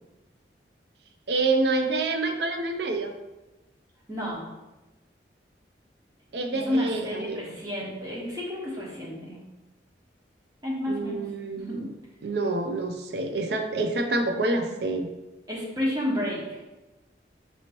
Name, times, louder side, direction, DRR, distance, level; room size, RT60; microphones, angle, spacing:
voice 1, 1.3-3.2 6.3-7.6 10.9-11.9 12.2-15.1, right 2 dB, 70° right, 5 dB, 0.5 m, -27 dB
voice 2, 4.1-4.4 6.5-9.4 10.6-11.2 11.6-11.8 15.5-16.6, equal, 20° right, -5 dB, 1.2 m, -30 dB
5.3 x 2.9 x 3.0 m, 1.1 s
head